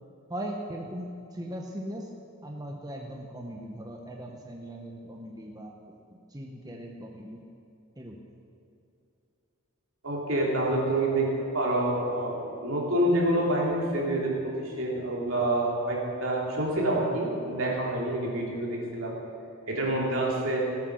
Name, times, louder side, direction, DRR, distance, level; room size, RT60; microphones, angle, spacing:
voice 1, 0.3-2.1 2.4-5.8 6.3-7.4 8.0-8.2, right 1 dB, 15° right, 0 dB, 1.0 m, -39 dB
voice 2, 10.0-19.1 19.7-20.6, right 1 dB, 70° right, -3 dB, 3.2 m, -27 dB
17.0 x 9.3 x 6.3 m, 2.7 s
head